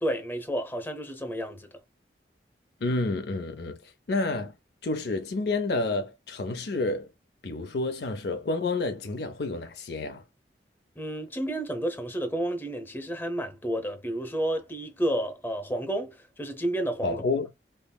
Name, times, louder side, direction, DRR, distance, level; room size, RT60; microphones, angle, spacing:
voice 1, 0.0-1.7 11.0-17.2, right 1 dB, 10° left, 0.7 m, -31 dB
voice 2, 2.8-4.5 4.8-7.1 7.4-10.2 17.0-17.5, left 3 dB, 70° left, 0.6 m, -29 dB
5.5 x 2.0 x 2.2 m
head